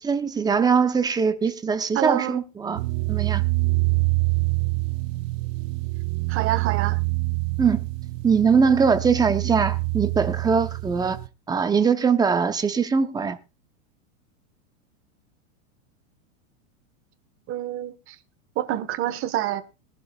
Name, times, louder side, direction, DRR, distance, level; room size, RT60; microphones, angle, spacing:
voice 1, 0.0-2.8 3.1-3.4 7.6-7.9 8.2-11.2 11.5-13.4, right 5 dB, 10° right, 0.6 m, -21 dB
voice 2, 1.9-2.4 6.3-7.0 17.5-18.2 18.5-19.6, right 13 dB, 30° right, 1.2 m, -27 dB
sound 1, 2.7-11.3, right 23 dB, 65° right, 0.9 m, -26 dB
21.0 x 11.5 x 2.3 m
supercardioid pair, 145°, 42 cm